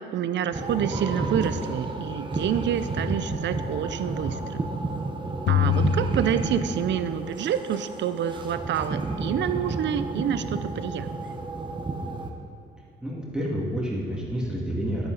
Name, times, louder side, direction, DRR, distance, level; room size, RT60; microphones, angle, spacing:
voice 1, 0.1-4.7 5.5-11.1, right 9 dB, 65° right, 12 dB, 0.6 m, -28 dB
sound 1, 0.5-12.3, right 2 dB, 25° right, 1.1 m, -31 dB
sound 2, 5.5-7.3, left 9 dB, 65° left, 0.5 m, -26 dB
voice 2, 13.0-15.1, equal, 5° right, -5 dB, 2.2 m, -29 dB
10.5 x 9.9 x 4.0 m, 2.3 s
cardioid pair, 90°, 20 cm